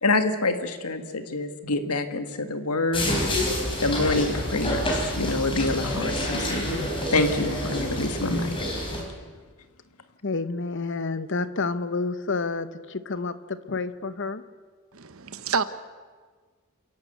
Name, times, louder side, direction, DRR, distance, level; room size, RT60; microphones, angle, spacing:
voice 1, 0.0-3.3 3.8-6.8 7.1-8.5, left 2 dB, 85° left, 9 dB, 1.7 m, -26 dB
sound 1, 2.9-9.0, equal, 25° left, 4.4 m, -28 dB
voice 2, 10.2-14.4, left 3 dB, 55° left, 13 dB, 1.0 m, -29 dB
voice 3, 14.9-15.6, right 5 dB, 70° right, 13 dB, 1.0 m, -28 dB
29.0 x 11.0 x 8.0 m, 1.5 s
head